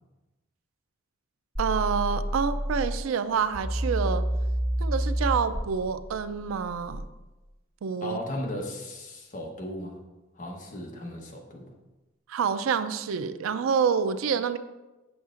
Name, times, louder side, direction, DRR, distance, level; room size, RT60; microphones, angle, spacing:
sound 1, 1.5-3.0 3.5-7.0, right 1 dB, 20° right, 1.4 m, -29 dB
voice 1, 1.6-4.2 4.8-7.0 7.8-8.2 12.3-14.6, right 6 dB, 90° right, 12 dB, 0.4 m, -27 dB
voice 2, 8.0-10.0 10.4-11.7, left 1 dB, 40° left, 0 dB, 1.0 m, -36 dB
7.1 x 7.1 x 2.5 m, 1.1 s
head